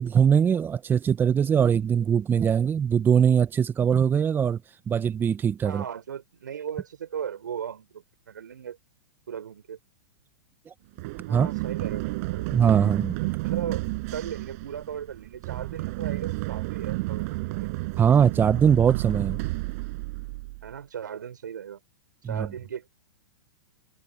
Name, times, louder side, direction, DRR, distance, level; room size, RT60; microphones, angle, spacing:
voice 1, 0.0-4.6 4.9-5.8 10.7-10.8 11.3-11.5 12.5-13.2 18.0-19.4 22.2-22.5, right 8 dB, 20° right, 1.1 m, -21 dB
voice 2, 5.6-8.8 9.3-9.8 11.3-12.5 13.4-17.7 20.6-21.8 22.2-22.9, right 8 dB, 80° right, 6.7 m, -37 dB
Run, 11.0-20.7, right 24 dB, 50° right, 7.4 m, -31 dB
hypercardioid pair, 115°, 10 cm